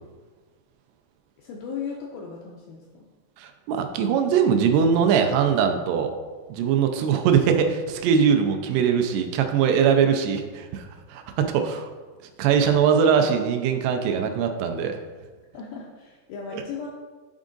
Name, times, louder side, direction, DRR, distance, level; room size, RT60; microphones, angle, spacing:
voice 1, 1.4-3.1 15.5-16.9, left 6 dB, 90° left, -2 dB, 2.0 m, -36 dB
voice 2, 3.4-6.1 6.5-11.9 12.4-15.0 16.5-16.6, right 7 dB, 90° right, 5 dB, 2.8 m, -21 dB
9.6 x 3.6 x 3.8 m, 1.4 s
omnidirectional pair, 4.7 m